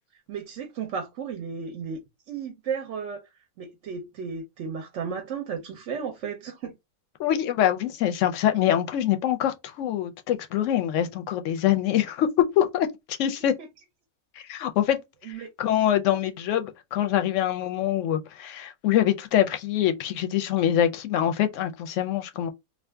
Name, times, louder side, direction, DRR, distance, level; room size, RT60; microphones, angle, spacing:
voice 1, 0.3-2.0 2.3-3.3 3.6-6.7 15.3-15.5, right 6 dB, 65° right, 0.8 m, -34 dB
voice 2, 7.2-12.3 12.6-13.5 14.4-22.5, left 11 dB, 70° left, 0.8 m, -25 dB
2.6 x 2.4 x 3.3 m
omnidirectional pair, 1.5 m